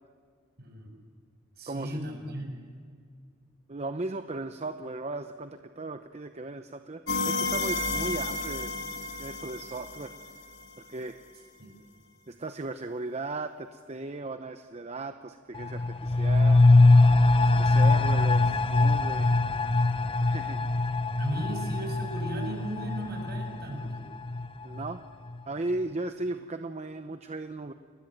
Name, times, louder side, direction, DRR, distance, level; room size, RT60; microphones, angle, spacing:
voice 1, 0.6-0.9 1.6-2.5 11.6-11.7 21.2-24.0, right 1 dB, 55° right, 2 dB, 7.4 m, -36 dB
voice 2, 1.7-2.0 3.7-8.7 9.2-10.1 10.9-11.2 12.3-16.6 17.4-19.3 20.2-20.6 24.6-25.0 25.5-27.7, right 2 dB, 35° right, 8 dB, 0.8 m, -36 dB
sound 1, 7.1-10.8, left 2 dB, 75° left, 2.4 m, -32 dB
sound 2, 15.5-25.0 25.3-25.4, left 2 dB, 30° left, 0.7 m, -23 dB
29.0 x 21.0 x 9.1 m, 2.1 s
head